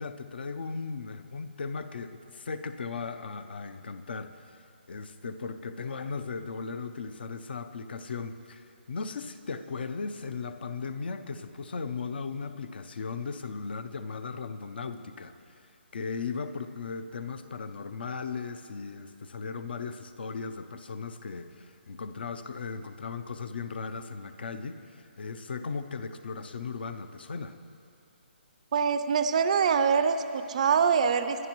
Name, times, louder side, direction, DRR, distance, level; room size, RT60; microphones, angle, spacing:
voice 1, 0.0-4.4 4.9-15.3 15.9-27.6, left 5 dB, 60° left, 10 dB, 0.6 m, -37 dB
voice 2, 28.7-31.5, right 6 dB, 35° right, 11 dB, 0.4 m, -24 dB
22.0 x 11.0 x 3.0 m, 2.6 s
hypercardioid pair, 170°, 6 cm